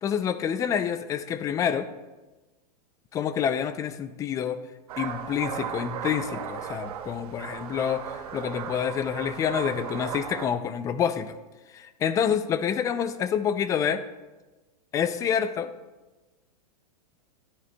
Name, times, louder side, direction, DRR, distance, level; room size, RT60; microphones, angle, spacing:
voice 1, 0.0-1.9 3.1-4.6 5.0-11.4 11.7-14.0 14.9-15.7, left 8 dB, 15° left, 12 dB, 0.4 m, -27 dB
sound 1, 4.9-10.5, right 8 dB, 70° right, 1.0 m, -36 dB
14.0 x 9.5 x 2.2 m, 1.1 s
supercardioid pair, 145°, 20 cm